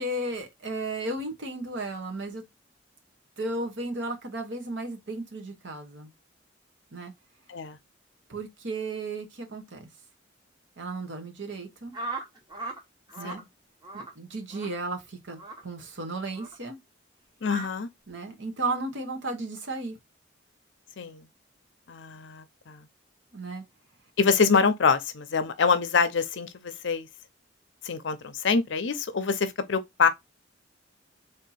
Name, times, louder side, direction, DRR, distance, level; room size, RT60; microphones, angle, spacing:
voice 1, 0.0-2.4 3.4-6.1 6.9-7.1 8.3-9.9 10.8-11.9 13.2-13.4 13.9-16.8 18.1-20.0 23.3-23.6, right 2 dB, 70° right, 1.1 m, -34 dB
sound 1, 11.9-12.8 13.1-13.4 13.8-14.1 14.5-14.7 15.4-15.6 16.3-16.5 17.4-17.7, right 2 dB, 20° right, 0.9 m, -37 dB
voice 2, 17.4-17.9 21.0-21.2 21.9-22.8 24.2-27.1 27.8-30.1, left 5 dB, 70° left, 0.6 m, -25 dB
3.5 x 2.8 x 4.1 m
head